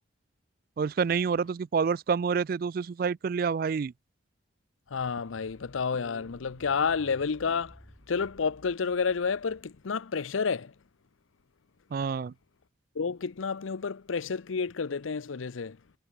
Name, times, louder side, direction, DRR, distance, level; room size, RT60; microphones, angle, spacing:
voice 1, 0.8-3.9 11.9-12.3, right 6 dB, 50° right, 0.3 m, -28 dB
voice 2, 4.9-7.8 8.1-10.7 13.0-15.8, left 5 dB, 90° left, 0.6 m, -30 dB
sound 1, 5.3-9.9, equal, ahead, 7.7 m, -55 dB
head